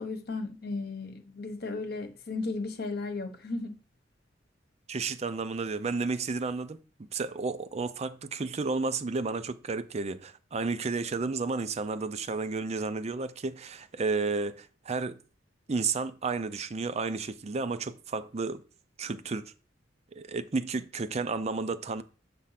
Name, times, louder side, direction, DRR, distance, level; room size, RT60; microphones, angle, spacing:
voice 1, 0.0-3.7, left 3 dB, 55° left, 1.2 m, -35 dB
voice 2, 4.9-15.2 15.7-18.6 19.0-19.5 20.1-22.0, right 4 dB, 35° right, 0.5 m, -32 dB
7.5 x 3.5 x 5.8 m
head